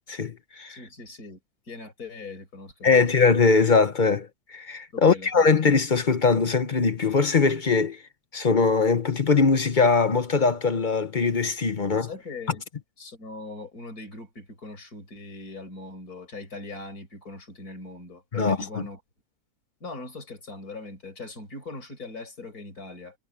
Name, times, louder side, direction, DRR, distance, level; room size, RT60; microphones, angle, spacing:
voice 1, 0.1-0.8 2.8-8.0 8.3-12.1 18.3-18.9, left 4 dB, 35° left, 0.8 m, -21 dB
voice 2, 0.7-1.4 1.6-3.1 4.9-5.5 11.9-12.6 13.0-19.0 19.8-23.2, left 3 dB, 60° left, 6.1 m, -40 dB
omnidirectional pair, 1.8 m